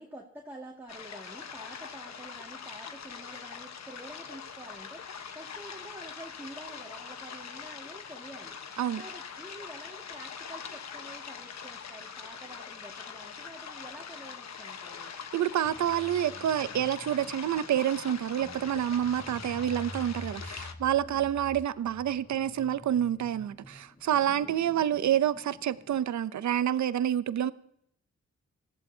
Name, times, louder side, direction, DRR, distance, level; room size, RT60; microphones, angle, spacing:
voice 1, 0.0-5.1 5.3-8.5 9.0-15.1 21.0-21.3 24.3-24.9, right 1 dB, 5° right, 2.0 m, -48 dB
sound 1, 0.9-20.7, left 6 dB, 70° left, 1.1 m, -43 dB
voice 2, 15.3-27.5, right 10 dB, 75° right, 0.6 m, -28 dB
sound 2, 15.6-26.1, equal, 25° left, 2.7 m, -48 dB
19.0 x 14.0 x 2.8 m
cardioid pair, 70°, 29 cm